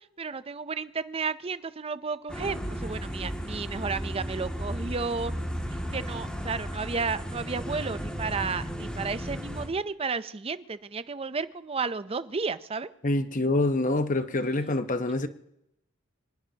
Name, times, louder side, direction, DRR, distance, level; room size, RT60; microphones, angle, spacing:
voice 1, 0.2-5.3 5.9-12.9, right 4 dB, 30° right, 0.5 m, -32 dB
sound 1, 2.3-9.7, equal, 5° left, 2.1 m, -34 dB
voice 2, 13.0-15.3, left 2 dB, 40° left, 0.9 m, -26 dB
26.0 x 19.5 x 2.9 m
head